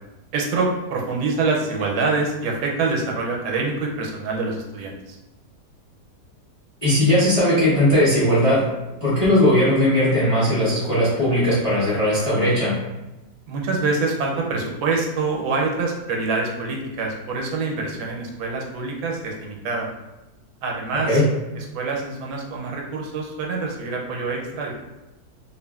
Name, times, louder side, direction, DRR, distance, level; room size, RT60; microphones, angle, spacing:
voice 1, 0.3-5.2 13.5-19.9 20.6-21.2 21.6-24.7, right 3 dB, 85° right, -1 dB, 1.2 m, -25 dB
voice 2, 6.8-8.6 9.0-12.7 21.1-21.2, left 1 dB, 35° left, -9 dB, 0.5 m, -18 dB
2.7 x 2.4 x 2.3 m, 1.0 s
omnidirectional pair, 1.7 m